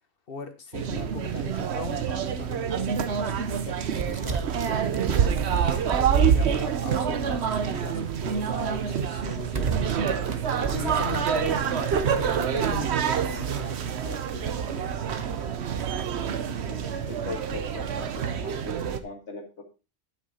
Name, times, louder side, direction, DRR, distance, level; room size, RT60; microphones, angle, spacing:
voice 1, 0.3-5.2 5.7-9.7 10.6-14.5, left 4 dB, 55° left, 8 dB, 1.4 m, -39 dB
sound 1, 0.7-19.0, right 7 dB, 70° right, 1.1 m, -27 dB
sound 2, 3.8-7.7 8.1-8.2 8.8-9.0 9.4-13.8, right 4 dB, 40° right, 1.1 m, -36 dB
voice 2, 16.5-19.6, left 3 dB, 80° left, 3 dB, 2.4 m, -40 dB
11.5 x 6.1 x 4.1 m, 0.30 s
omnidirectional pair, 1.2 m